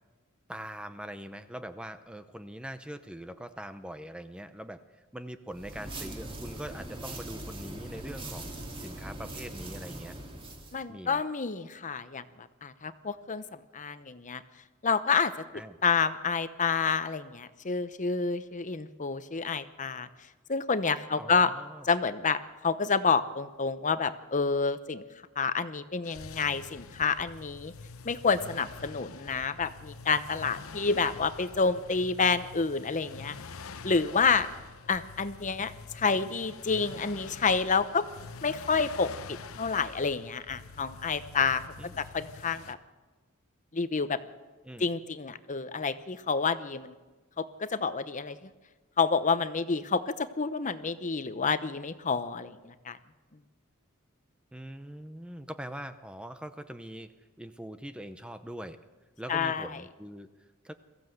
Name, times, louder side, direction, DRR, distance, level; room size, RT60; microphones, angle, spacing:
voice 1, 0.5-8.5 8.8-10.1 10.9-11.2 15.5-15.8 21.2-21.9 31.0-31.2 34.5-34.6 41.8-42.0 44.6-44.9 54.5-57.1 57.4-58.8 59.2-60.7, right 1 dB, 5° right, 10 dB, 0.7 m, -42 dB
sound 1, 5.5-10.8, right 1 dB, 25° right, 2.5 m, -41 dB
voice 2, 10.7-14.4 14.8-15.3 15.8-20.1 20.5-21.5 21.8-25.0 25.4-27.7 28.0-33.3 33.8-34.5 34.9-38.1 38.4-41.6 42.0-42.8 43.7-44.2 44.8-46.9 47.4-48.4 49.0-53.0 59.3-59.7, left 5 dB, 35° left, 12 dB, 0.8 m, -29 dB
sound 2, 26.0-42.7, left 4 dB, 70° left, 0.9 m, -46 dB
22.5 x 15.0 x 7.9 m, 1.3 s
head